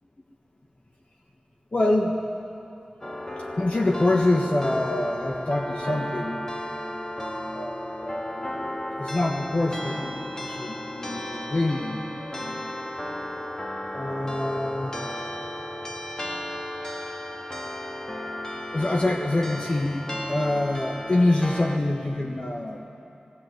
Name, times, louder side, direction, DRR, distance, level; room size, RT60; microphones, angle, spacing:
voice 1, 1.7-2.2 3.6-6.4 7.5-8.7 9.0-12.6 13.9-14.9 18.7-22.8, left 2 dB, 45° left, 0 dB, 1.5 m, -26 dB
sound 1, 3.0-21.8, left 1 dB, 25° left, 2.0 m, -34 dB
18.0 x 18.0 x 9.4 m, 2.9 s
cardioid pair, 45°, 3 cm